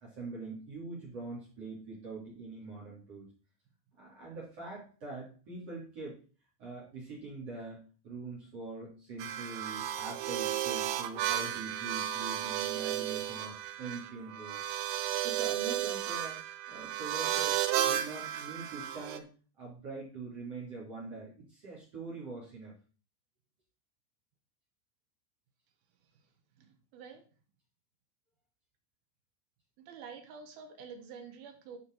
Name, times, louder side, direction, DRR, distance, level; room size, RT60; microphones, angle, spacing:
voice 1, 0.0-3.3 4.0-6.2 6.6-14.6 15.2-16.4 16.7-19.3 19.6-22.7, right 3 dB, 40° right, -3 dB, 3.4 m, -44 dB
sound 1, 9.2-19.2, right 12 dB, 85° right, 2.9 m, -33 dB
voice 2, 26.6-27.2 29.8-31.8, right 6 dB, 70° right, 6 dB, 2.7 m, -49 dB
11.5 x 5.1 x 4.6 m, 0.37 s
omnidirectional pair, 5.0 m